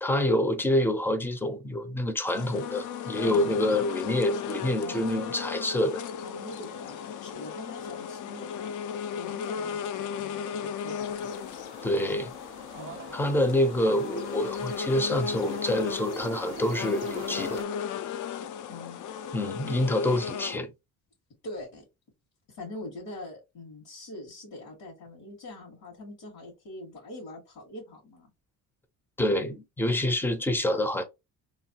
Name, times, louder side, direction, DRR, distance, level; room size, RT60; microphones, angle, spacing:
voice 1, 0.0-6.0 11.8-12.3 13.1-17.6 19.3-20.7 29.2-31.0, left 1 dB, 5° left, 0.5 m, -27 dB
sound 1, 2.3-20.6, left 7 dB, 60° left, 0.4 m, -35 dB
voice 2, 3.2-3.8 4.8-5.5 5.8-5.9 6.2-8.7 9.1-11.4 12.7-13.0 18.7-19.2 21.4-21.8 22.6-28.3, left 2 dB, 80° left, 1.8 m, -43 dB
sound 2, 11.0-17.6, right 6 dB, 35° right, 0.6 m, -45 dB
3.1 x 2.3 x 2.8 m
cardioid pair, 125°, 35 cm